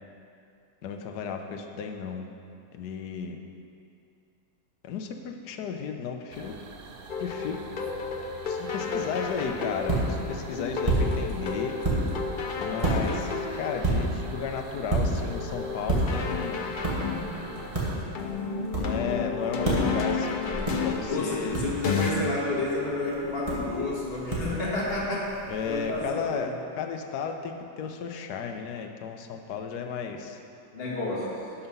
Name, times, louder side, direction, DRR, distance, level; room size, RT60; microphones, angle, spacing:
voice 1, 0.8-2.3 2.7-3.4 4.8-6.5 7.2-7.6 8.4-11.8 12.6-16.7 18.7-21.6 25.5-30.4, left 6 dB, 75° left, 4 dB, 1.3 m, -34 dB
sound 1, 6.3-18.0, right 5 dB, 90° right, 0.5 m, -45 dB
sound 2, 7.1-22.1, left 5 dB, 90° left, 0.4 m, -33 dB
sound 3, 9.2-26.0, right 2 dB, 20° right, 1.7 m, -32 dB
voice 2, 21.1-26.5 30.7-31.4, left 2 dB, 35° left, -5 dB, 1.9 m, -30 dB
11.5 x 5.8 x 5.4 m, 2.6 s
omnidirectional pair, 1.8 m